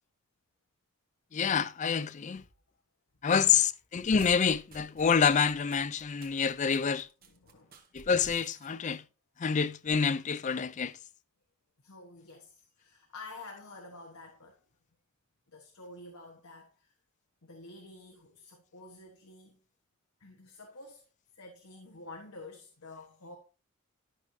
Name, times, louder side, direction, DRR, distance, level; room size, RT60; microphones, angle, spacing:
voice 1, 1.3-2.4 3.2-7.1 7.9-9.0 9.4-11.0, left 6 dB, 35° left, 0.4 m, -27 dB
sound 1, 4.0-9.0, right 3 dB, 40° right, 1.6 m, -53 dB
voice 2, 7.2-7.8 11.8-14.6 15.5-16.9 17.4-19.6 20.2-21.0 21.3-23.4, left 2 dB, 80° left, 1.3 m, -49 dB
12.0 x 6.4 x 2.7 m
head